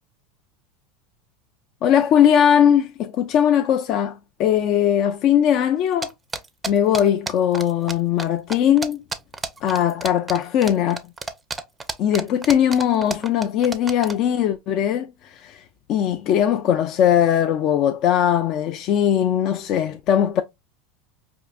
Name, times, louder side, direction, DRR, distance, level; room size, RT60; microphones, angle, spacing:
voice 1, 1.8-6.1 6.7-9.0 9.6-11.0 12.0-20.4, left 9 dB, 50° left, 0.3 m, -20 dB
sound 1, 6.0-7.9 8.2-8.3 8.5-14.1, right 3 dB, 15° right, 0.4 m, -30 dB
4.5 x 2.6 x 2.3 m
supercardioid pair, 120°, 0 cm